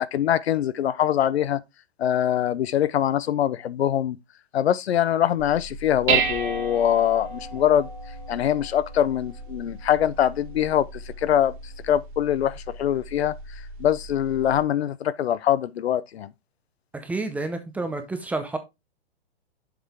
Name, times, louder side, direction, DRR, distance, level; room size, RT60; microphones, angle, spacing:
voice 1, 0.0-1.6 2.0-4.2 4.5-7.9 8.3-16.3, left 10 dB, 80° left, 0.7 m, -23 dB
Dishes pots and pans, 5.4-14.6, right 6 dB, 55° right, 2.0 m, -33 dB
voice 2, 16.9-18.6, right 2 dB, 5° right, 0.6 m, -29 dB
7.1 x 5.6 x 3.5 m
hypercardioid pair, 145°, 31 cm